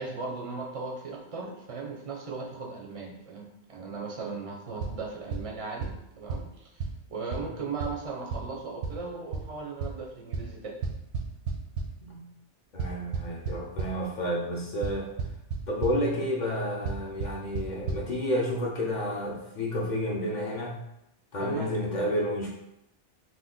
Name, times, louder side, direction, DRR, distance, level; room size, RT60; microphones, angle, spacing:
voice 1, 0.0-5.9 6.2-6.8 7.1-10.8 21.4-21.8, right 4 dB, 45° right, -1 dB, 0.4 m, -37 dB
sound 1, 4.8-4.9 5.3-5.4 5.8-5.9 6.3-6.4 6.8-6.9 7.3-7.4 7.8-7.9 8.3-8.4 8.8-8.9 9.3-9.4 9.8-9.9 10.3-10.4 10.8-11.8 12.8-13.9 14.8-14.9 15.2-15.6 15.8-15.9 16.9-17.0 17.2-17.3 17.6-17.7 17.9-18.0, right 4 dB, 85° right, 0.9 m, -30 dB
voice 2, 12.7-15.1 15.7-20.8 21.3-22.5, equal, 55° left, -2 dB, 0.5 m, -30 dB
2.9 x 2.2 x 3.6 m, 0.83 s
omnidirectional pair, 1.2 m